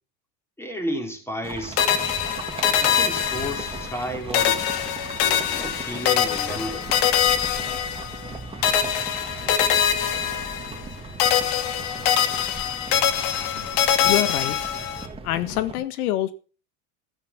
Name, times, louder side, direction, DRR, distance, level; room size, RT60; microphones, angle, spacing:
voice 1, 0.6-2.3 2.8-4.6 5.4-6.9, equal, 5° left, 4.7 m, -33 dB
sound 1, 1.4-15.8, right 3 dB, 15° right, 2.6 m, -38 dB
sound 2, 1.8-4.1 4.3-8.3 8.6-10.9 11.2-15.1, left 9 dB, 55° left, 2.8 m, -23 dB
voice 2, 14.0-14.6 15.2-16.3, left 13 dB, 90° left, 1.7 m, -25 dB
14.5 x 9.8 x 6.1 m
supercardioid pair, 135°, 43 cm